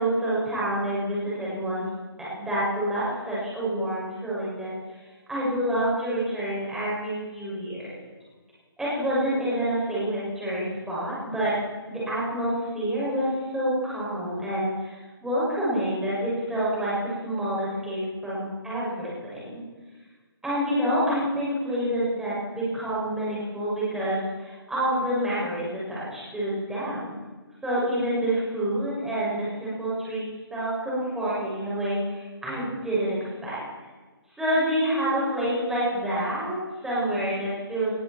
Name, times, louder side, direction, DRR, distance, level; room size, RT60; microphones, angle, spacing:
voice 1, 0.0-1.8 2.2-4.7 5.3-7.9 8.8-11.6 11.9-19.6 20.4-27.2 27.6-30.2 30.5-33.6 34.4-36.6 36.8-37.9, right 1 dB, 5° right, -8 dB, 6.5 m, -27 dB
20.5 x 15.5 x 4.5 m, 1.3 s
hypercardioid pair, 155°, 13 cm